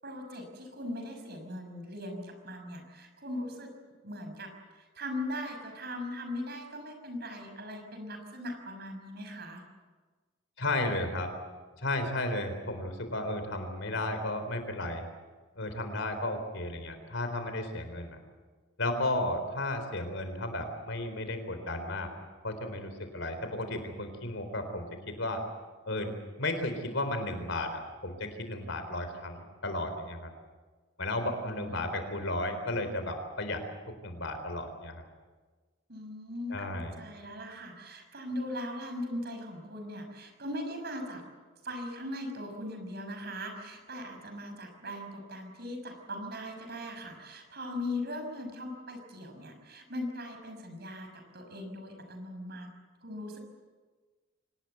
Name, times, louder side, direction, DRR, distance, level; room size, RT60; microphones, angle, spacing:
voice 1, 0.0-3.7 4.0-9.6 31.2-31.8 35.9-41.2 41.6-52.7 53.0-53.4, left 1 dB, 55° right, 5 dB, 5.9 m, -39 dB
voice 2, 10.6-11.3 11.8-15.1 15.6-18.2 18.8-22.1 22.4-25.4 25.9-26.1 26.4-30.3 31.0-33.6 34.0-35.0 36.5-37.0, left 1 dB, 70° left, 8 dB, 4.1 m, -34 dB
25.5 x 19.5 x 8.1 m, 1.4 s
head